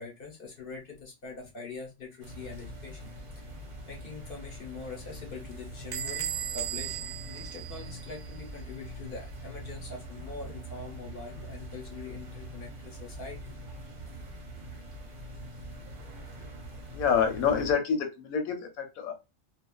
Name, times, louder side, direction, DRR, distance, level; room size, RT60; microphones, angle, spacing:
voice 1, 0.0-3.1 3.3-3.6 3.9-13.5, left 4 dB, 45° left, 0.9 m, -43 dB
sound 1, 2.2-17.7, right 1 dB, 45° right, 0.8 m, -43 dB
Bell / Door, 5.9-8.4, right 10 dB, 75° right, 0.4 m, -36 dB
voice 2, 16.9-19.1, left 7 dB, 85° left, 1.1 m, -27 dB
2.4 x 2.3 x 2.2 m
omnidirectional pair, 1.5 m